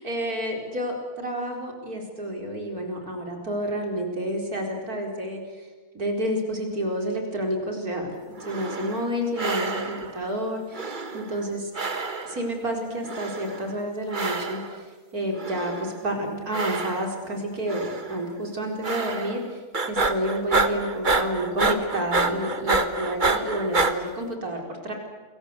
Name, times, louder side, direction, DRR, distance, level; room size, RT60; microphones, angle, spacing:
voice 1, 0.0-5.7 5.9-8.1 8.4-11.7 12.2-24.9, equal, 75° right, 2 dB, 5.0 m, -30 dB
sound 1, 8.4-9.1 9.4-10.2 10.7-11.5 11.7-12.5 13.1-13.7 14.1-14.8 15.4-16.0 16.5-17.3 17.7-18.2 18.8-19.5 19.7-23.9, right 3 dB, 35° right, 1.5 m, -27 dB
29.0 x 22.5 x 8.2 m, 1.4 s
omnidirectional pair, 1.6 m